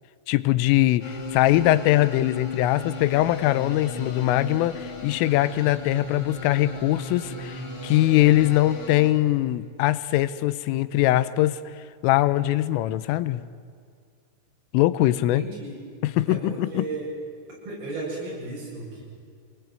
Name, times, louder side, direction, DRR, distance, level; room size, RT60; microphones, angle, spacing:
voice 1, 0.3-11.6 12.0-13.5 14.7-15.4 16.2-16.9, left 15 dB, 90° left, 15 dB, 3.4 m, -22 dB
sound 1, 1.0-9.1, left 4 dB, 35° left, 2.8 m, -36 dB
voice 2, 15.2-15.8 16.3-17.1 17.6-19.0, right 2 dB, 50° right, -4 dB, 9.9 m, -35 dB
26.5 x 20.5 x 9.2 m, 2.2 s
omnidirectional pair, 5.6 m